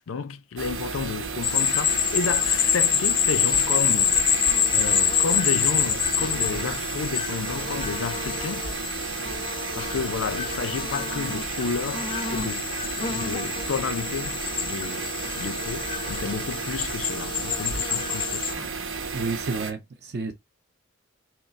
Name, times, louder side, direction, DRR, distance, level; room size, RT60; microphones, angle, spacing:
voice 1, 0.0-8.7 9.7-15.1 15.4-18.7, left 5 dB, 85° left, 0.5 m, -32 dB
sound 1, 0.6-19.7, right 5 dB, 80° right, 0.9 m, -33 dB
sound 2, 1.4-18.5, left 8 dB, 25° left, 0.4 m, -26 dB
voice 2, 19.1-20.3, right 4 dB, 55° right, 0.6 m, -30 dB
3.7 x 2.4 x 3.9 m
head